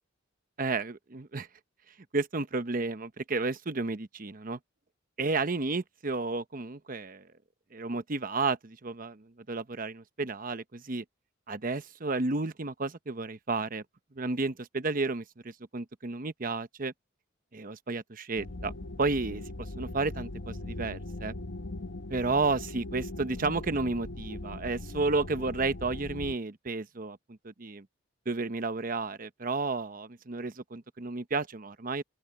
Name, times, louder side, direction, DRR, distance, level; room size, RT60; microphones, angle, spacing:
voice 1, 0.6-1.5 2.1-4.6 5.2-7.3 7.7-11.0 11.5-13.8 14.1-16.9 17.5-18.7 19.0-21.3 22.1-27.2 27.4-27.9 28.3-32.0, right 3 dB, 45° right, 0.9 m, -32 dB
sound 1, 18.4-26.3, left 2 dB, 60° left, 1.1 m, -40 dB
open air
head